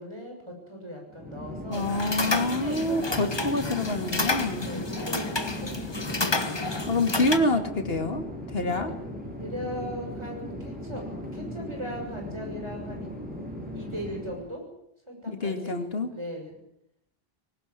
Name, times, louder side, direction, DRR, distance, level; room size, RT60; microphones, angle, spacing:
voice 1, 0.0-1.9 2.5-3.8 4.6-6.3 8.8-9.0 9.4-13.1 13.7-14.7 15.1-15.8 16.1-16.6, equal, 25° right, 1 dB, 7.0 m, -39 dB
Chatter / Fixed-wing aircraft airplane, 1.1-14.5, left 1 dB, 10° right, 7.1 m, -38 dB
voice 2, 1.7-4.7 6.9-8.9 15.3-16.1, left 2 dB, 70° left, 6 dB, 2.4 m, -27 dB
sound 1, 1.7-7.4, left 2 dB, 25° left, 1.2 m, -30 dB
20.0 x 18.5 x 8.9 m, 0.73 s
omnidirectional pair, 1.1 m